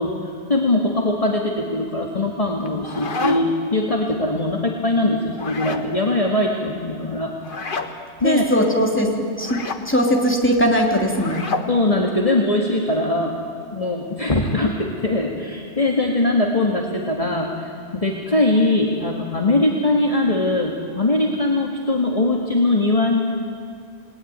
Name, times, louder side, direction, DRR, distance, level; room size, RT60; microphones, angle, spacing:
voice 1, 0.0-7.3 7.8-7.9 8.2-8.5 11.7-13.4 13.7-23.2, left 2 dB, 30° left, 0 dB, 2.0 m, -21 dB
sound 1, 2.6-3.7 5.3-5.9 7.4-7.9 9.4-9.8 11.1-11.7, left 3 dB, 50° left, 1.5 m, -28 dB
voice 2, 8.2-11.4, equal, 10° left, 0 dB, 3.2 m, -20 dB
28.5 x 19.5 x 9.5 m, 2.2 s
omnidirectional pair, 1.2 m